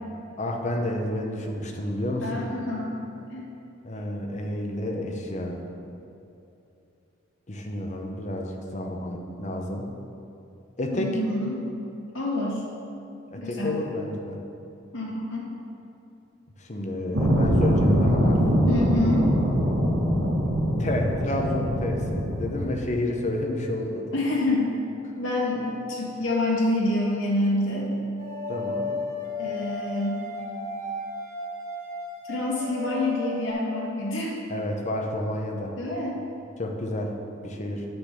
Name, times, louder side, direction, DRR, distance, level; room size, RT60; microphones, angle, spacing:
voice 1, 0.4-2.4 3.8-5.7 7.5-9.9 10.8-11.2 13.3-14.4 16.6-18.4 20.8-24.1 28.5-28.9 34.5-35.7 36.6-37.9, left 1 dB, 40° left, 2 dB, 0.9 m, -30 dB
voice 2, 2.2-3.5 10.9-11.6 12.1-12.6 13.4-13.8 14.9-15.5 18.7-19.3 24.1-24.8 25.2-27.9 29.4-30.2 32.3-34.3 35.8-36.2, left 1 dB, 75° left, -4 dB, 2.0 m, -27 dB
sound 1, 17.1-22.7, equal, 70° right, 1.3 m, -23 dB
sound 2, 28.2-33.5, left 2 dB, 40° right, 1.4 m, -34 dB
9.1 x 4.0 x 6.8 m, 2.7 s
head